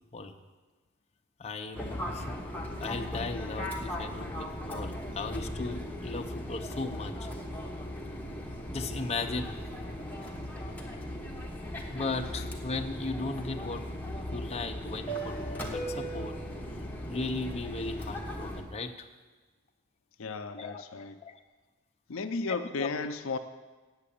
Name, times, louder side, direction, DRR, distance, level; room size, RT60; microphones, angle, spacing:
voice 1, 1.4-2.4 2.8-7.3 8.7-9.6 9.9-10.2 11.9-13.8 14.3-16.3 17.1-19.1 20.6-20.8 21.2-21.4 22.5-22.9, left 3 dB, 30° left, 3 dB, 0.7 m, -37 dB
Fixed-wing aircraft airplane, 1.7-18.6, equal, 10° left, 1.2 m, -38 dB
voice 2, 20.2-21.2 22.1-23.4, left 4 dB, 70° left, 8 dB, 0.6 m, -34 dB
8.1 x 7.6 x 8.5 m, 1.3 s
head